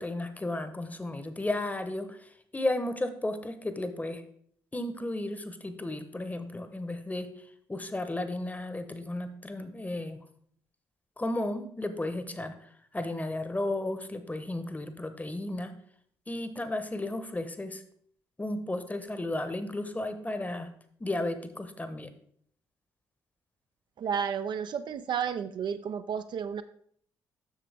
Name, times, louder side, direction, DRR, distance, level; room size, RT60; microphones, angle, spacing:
voice 1, 0.0-4.2 4.7-7.3 7.7-10.2 11.2-12.6 12.9-15.7 16.3-17.8 18.4-20.7 21.0-22.1, left 1 dB, 15° left, 9 dB, 0.9 m, -34 dB
voice 2, 24.0-26.6, right 7 dB, 50° right, 10 dB, 0.4 m, -32 dB
7.4 x 6.5 x 3.4 m, 0.62 s
figure-of-eight pair, 45°, 10 cm